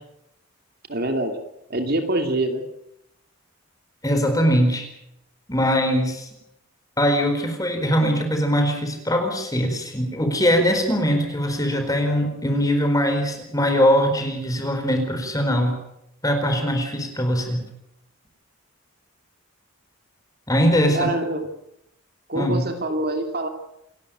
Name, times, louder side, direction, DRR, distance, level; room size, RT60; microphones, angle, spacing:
voice 1, 0.9-1.3 1.7-2.6 20.9-21.5 22.3-23.5, right 1 dB, 45° right, 5 dB, 2.7 m, -24 dB
voice 2, 4.0-4.9 5.5-6.3 7.0-15.8 16.2-17.6 20.5-21.1 22.3-22.6, equal, 15° left, 5 dB, 4.5 m, -21 dB
29.0 x 13.0 x 9.1 m, 0.82 s
head